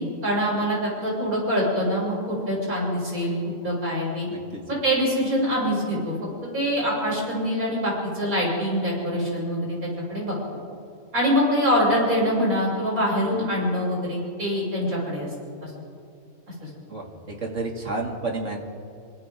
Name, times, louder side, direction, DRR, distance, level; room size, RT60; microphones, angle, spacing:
voice 1, 0.0-3.4 3.6-4.3 4.7-6.1 6.5-9.8 10.1-10.3 11.1-15.3 15.6-15.7 16.6-16.7, equal, 90° right, -5 dB, 8.1 m, -24 dB
voice 2, 4.3-4.6 16.9-18.6, right 3 dB, 55° right, 0 dB, 3.0 m, -31 dB
28.0 x 26.0 x 3.8 m, 2.5 s
omnidirectional pair, 1.5 m